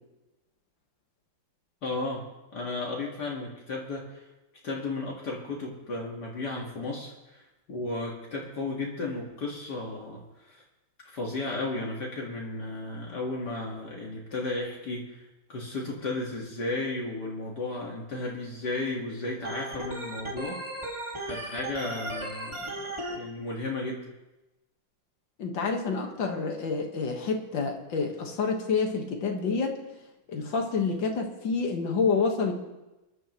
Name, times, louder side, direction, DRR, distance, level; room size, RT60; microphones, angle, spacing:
voice 1, 1.8-2.2 2.5-4.2 4.6-10.6 11.0-15.2 15.5-20.6 21.3-24.0, left 2 dB, 60° left, -2 dB, 2.3 m, -34 dB
Organ, 19.4-23.2, right 1 dB, 15° right, 2.0 m, -36 dB
voice 2, 25.4-29.8 30.3-32.5, left 4 dB, 75° left, 3 dB, 2.2 m, -28 dB
23.5 x 11.0 x 3.0 m, 1.0 s
omnidirectional pair, 2.1 m